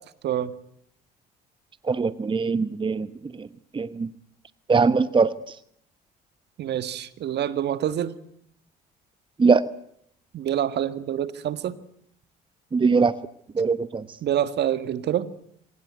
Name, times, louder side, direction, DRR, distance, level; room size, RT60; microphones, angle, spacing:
voice 1, 1.9-3.1 3.4-3.5 3.7-4.1 4.7-5.3 9.4-9.7 12.7-13.1 13.5-14.0, right 4 dB, 25° right, 15 dB, 1.0 m, -21 dB
voice 2, 6.6-8.1 10.3-11.7 14.2-15.3, right 10 dB, 60° right, 14 dB, 1.6 m, -26 dB
25.0 x 19.0 x 9.5 m, 0.70 s
supercardioid pair, 70°, 20 cm